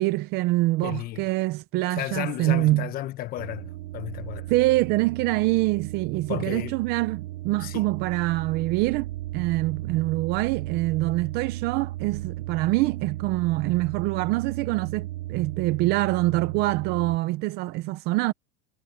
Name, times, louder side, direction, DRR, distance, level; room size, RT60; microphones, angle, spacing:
voice 1, 0.0-2.9 4.5-18.3, right 19 dB, 30° right, 0.6 m, -25 dB
voice 2, 0.8-1.2 2.0-4.5 6.3-6.7 7.6-7.8, left 14 dB, 25° left, 1.2 m, -33 dB
sound 1, 3.4-17.2, right 15 dB, 90° right, 3.1 m, -35 dB
supercardioid pair, 170°, 34 cm